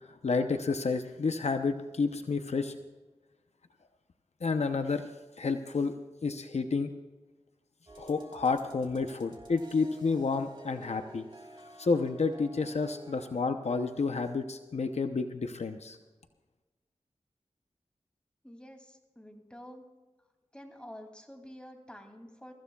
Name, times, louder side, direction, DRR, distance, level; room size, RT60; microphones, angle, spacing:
voice 1, 0.0-2.7 4.4-5.0 5.4-5.9 6.2-6.9 8.0-11.2 11.8-16.0, left 4 dB, 65° left, 7 dB, 0.8 m, -30 dB
sound 1, 7.9-13.3, right 1 dB, 40° right, 2.5 m, -51 dB
voice 2, 18.4-19.8 20.5-22.5, equal, 10° left, 2 dB, 2.7 m, -48 dB
22.5 x 15.0 x 2.4 m, 1.2 s
wide cardioid pair, 65°, 12 cm